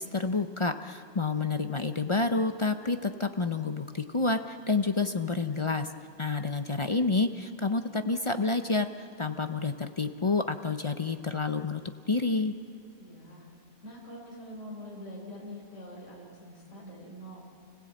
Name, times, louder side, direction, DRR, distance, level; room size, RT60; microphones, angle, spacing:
voice 1, 0.0-5.9 6.2-8.9 9.2-11.8 12.1-12.5, left 3 dB, 35° left, 7 dB, 0.5 m, -29 dB
voice 2, 12.9-13.5 13.8-17.4, equal, 55° left, -3 dB, 4.3 m, -44 dB
29.5 x 16.5 x 8.7 m, 2.4 s
omnidirectional pair, 1.5 m